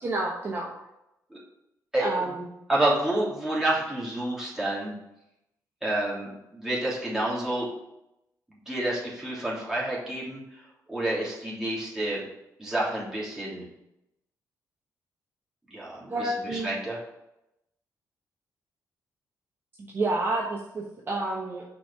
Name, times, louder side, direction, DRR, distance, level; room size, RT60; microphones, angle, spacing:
voice 1, 0.0-0.7 2.0-2.5 16.1-16.7 19.8-21.6, right 2 dB, 35° right, -2 dB, 1.1 m, -29 dB
voice 2, 1.9-2.3 2.7-4.9 5.8-7.7 8.7-12.2 12.6-13.6 15.7-17.0, right 1 dB, 5° right, -7 dB, 3.0 m, -29 dB
6.0 x 4.6 x 5.6 m, 0.86 s
cardioid pair, 120°, 7 cm